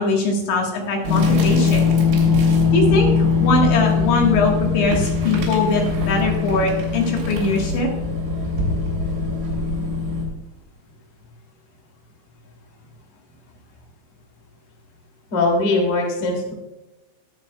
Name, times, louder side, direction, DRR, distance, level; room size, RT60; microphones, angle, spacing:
voice 1, 0.0-1.9 2.7-7.9, left 2 dB, 70° left, 0 dB, 3.9 m, -21 dB
sound 1, 1.0-10.3, left 4 dB, 70° right, 5.7 m, -20 dB
voice 2, 15.3-16.5, left 2 dB, 35° left, 0 dB, 3.0 m, -20 dB
20.5 x 8.1 x 2.3 m, 1.0 s
omnidirectional pair, 5.7 m